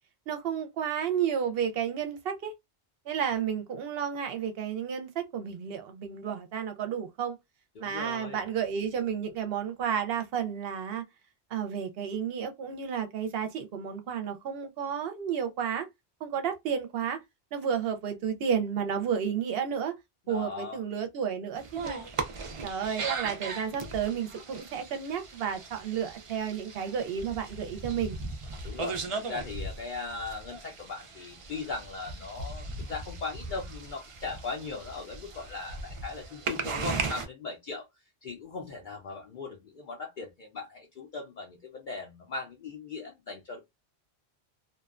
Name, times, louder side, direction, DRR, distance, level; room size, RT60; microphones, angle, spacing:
voice 1, 0.3-2.5 3.1-7.4 7.8-11.0 11.5-15.9 16.2-17.2 17.5-19.9 20.3-22.0 22.6-28.2, right 8 dB, 70° right, 0.8 m, -32 dB
voice 2, 7.8-8.4 20.3-20.8 28.6-29.0 29.3-37.8 38.2-43.6, left 4 dB, 55° left, 0.6 m, -39 dB
sound 1, 21.6-37.3, right 4 dB, 50° right, 0.3 m, -38 dB
2.6 x 2.2 x 2.4 m
omnidirectional pair, 1.1 m